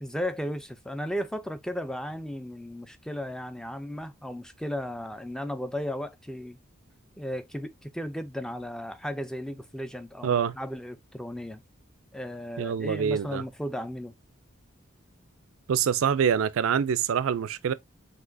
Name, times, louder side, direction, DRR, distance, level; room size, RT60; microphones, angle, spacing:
voice 1, 0.0-6.6 7.2-11.6 12.1-14.1, equal, 5° left, 0.3 m, -35 dB
voice 2, 10.2-10.5 12.6-13.4 15.7-17.7, right 7 dB, 75° right, 0.4 m, -25 dB
6.0 x 2.8 x 2.5 m
head